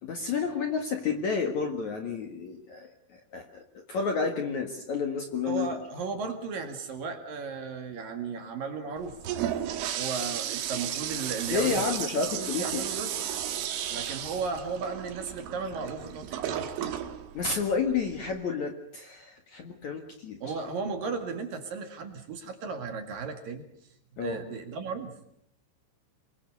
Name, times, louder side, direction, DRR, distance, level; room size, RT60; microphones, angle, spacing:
voice 1, 0.0-5.7 11.5-12.8 17.3-20.4 24.2-24.4, left 5 dB, 55° left, 4 dB, 2.3 m, -30 dB
voice 2, 5.5-9.1 9.9-13.3 13.9-17.0 20.4-23.6 24.2-25.2, right 4 dB, 55° right, 6 dB, 3.3 m, -35 dB
Toilet flush, 9.0-18.4, right 10 dB, 85° right, 4.1 m, -34 dB
27.0 x 22.5 x 6.8 m, 0.70 s
omnidirectional pair, 5.4 m